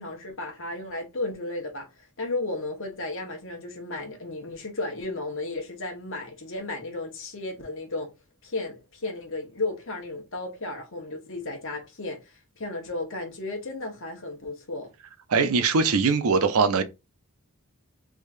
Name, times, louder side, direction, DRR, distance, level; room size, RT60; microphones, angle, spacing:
voice 1, 0.0-1.9 2.2-8.1 8.4-14.9, left 2 dB, 60° left, 1.4 m, -34 dB
voice 2, 15.3-16.8, right 4 dB, 70° right, 0.6 m, -21 dB
3.6 x 3.3 x 2.6 m
head